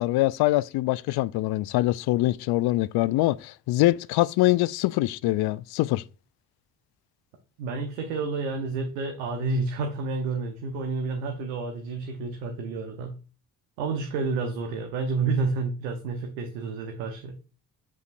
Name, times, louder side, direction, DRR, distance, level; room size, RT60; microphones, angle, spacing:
voice 1, 0.0-6.0, left 17 dB, 55° left, 0.5 m, -24 dB
voice 2, 7.6-13.1 13.8-17.3, right 4 dB, 75° right, 1.0 m, -30 dB
8.0 x 5.4 x 2.5 m
hypercardioid pair, 40°, 48 cm